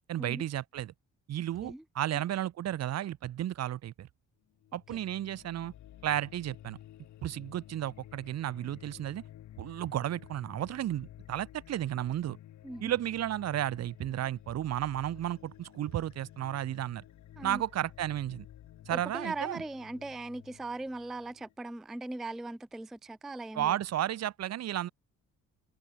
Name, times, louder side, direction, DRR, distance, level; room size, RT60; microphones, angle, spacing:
voice 1, 0.1-0.9 1.3-4.1 4.7-5.7 6.0-6.8 7.2-9.2 9.6-12.4 12.8-17.0 17.4-18.5 18.9-19.6 23.5-24.9, right 12 dB, 60° right, 0.8 m, -33 dB
sound 1, 4.5-21.5, left 12 dB, 70° left, 1.8 m, -53 dB
voice 2, 18.9-23.8, right 2 dB, ahead, 0.3 m, -39 dB
cardioid pair, 90°, 30 cm